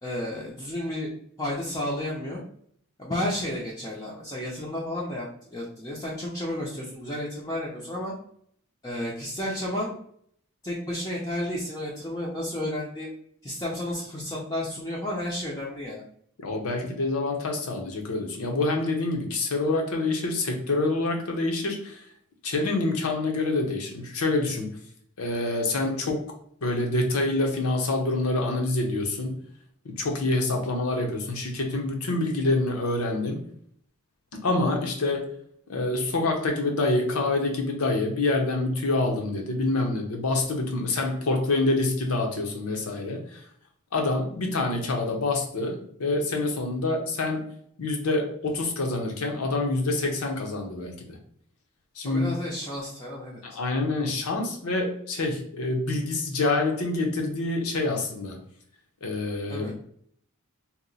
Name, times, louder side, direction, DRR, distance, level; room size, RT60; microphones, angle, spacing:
voice 1, 0.0-1.1 1.4-2.4 3.0-8.1 8.8-9.9 10.6-13.1 13.4-16.0 52.0-53.4 59.5-59.7, left 1 dB, 15° left, -5 dB, 0.5 m, -32 dB
voice 2, 16.4-22.0 22.4-24.7 25.2-26.3 26.6-29.3 29.8-33.4 34.3-35.3 35.7-43.4 43.9-47.4 47.8-51.2 52.0-52.3 53.4-58.4 59.0-59.7, left 2 dB, 80° left, 2 dB, 0.7 m, -26 dB
2.9 x 2.1 x 3.8 m, 0.64 s
head